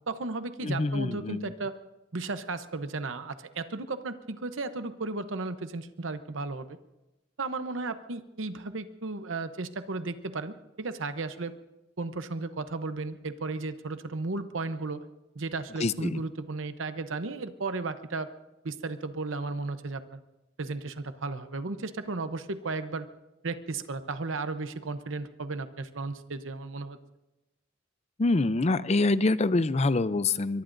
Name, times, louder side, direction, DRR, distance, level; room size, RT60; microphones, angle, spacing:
voice 1, 0.1-1.7 2.1-6.8 7.4-11.5 12.0-15.0 15.3-18.3 18.6-20.2 20.6-23.1 23.4-27.0, right 3 dB, 85° right, 10 dB, 0.9 m, -34 dB
voice 2, 0.6-1.5 15.8-16.2 28.2-30.6, left 2 dB, 35° left, 15 dB, 0.5 m, -25 dB
23.5 x 23.0 x 2.6 m, 0.99 s
head